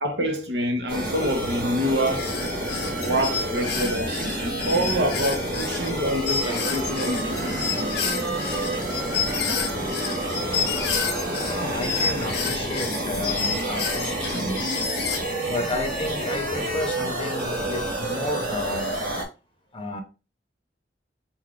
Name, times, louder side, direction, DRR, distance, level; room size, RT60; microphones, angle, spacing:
voice 1, 0.0-2.3 3.0-7.9, equal, 80° right, 1.2 m, -27 dB
sound 1, 0.9-19.2, right 1 dB, 55° right, 2.1 m, -29 dB
sound 2, 2.1-11.6 11.8-15.2, left 6 dB, 70° left, 0.8 m, -29 dB
sound 3, 6.5-12.1, right 3 dB, 20° right, 0.5 m, -37 dB
voice 2, 11.5-14.7 15.5-19.0 19.7-20.0, left 2 dB, 30° left, 0.8 m, -31 dB
4.7 x 2.7 x 3.7 m
head